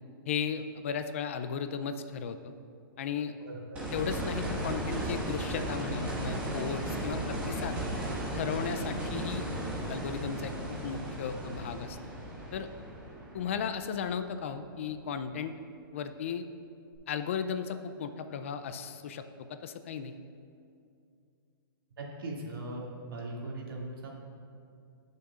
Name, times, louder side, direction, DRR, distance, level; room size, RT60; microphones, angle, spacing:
voice 1, 0.3-2.5 3.0-3.3 3.9-7.8 8.3-9.5 9.9-12.0 12.5-12.7 13.3-15.5 15.9-16.5 17.1-19.2 19.5-20.2, left 7 dB, 35° left, 9 dB, 0.4 m, -35 dB
voice 2, 3.4-3.8 22.0-22.8 23.1-24.2, right 2 dB, 75° right, -2 dB, 2.2 m, -39 dB
sound 1, 3.7-14.7 16.9-17.0, right 1 dB, 10° right, 1.6 m, -36 dB
18.0 x 6.6 x 2.4 m, 2.5 s
hypercardioid pair, 170°, 12 cm